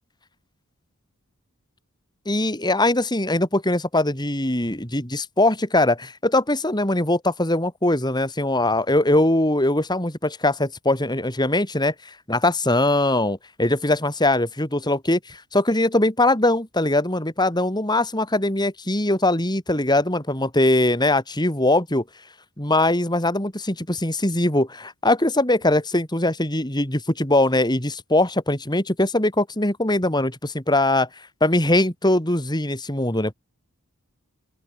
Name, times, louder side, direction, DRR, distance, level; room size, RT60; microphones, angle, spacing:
voice 1, 2.3-22.0 22.6-31.1 31.4-33.3, left 1 dB, 20° left, 4.5 m, -21 dB
open air
head